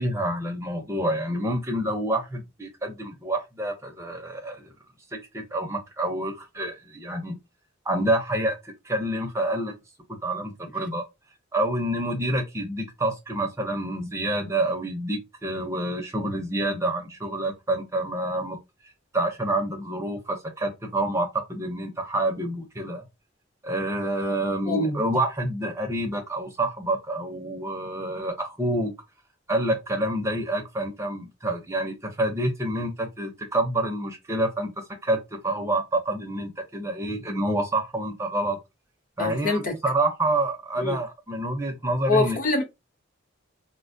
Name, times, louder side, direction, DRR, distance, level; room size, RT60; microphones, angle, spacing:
voice 1, 0.0-4.7 5.3-7.4 7.9-9.7 10.1-11.0 11.5-18.6 19.1-23.0 23.6-28.9 29.5-34.7 35.0-38.6 39.2-42.4, right 1 dB, 15° right, 0.5 m, -28 dB
voice 2, 24.7-25.0 39.2-39.7 40.8-40.9 42.1-42.6, left 2 dB, 40° left, 0.8 m, -24 dB
4.1 x 2.1 x 2.5 m
head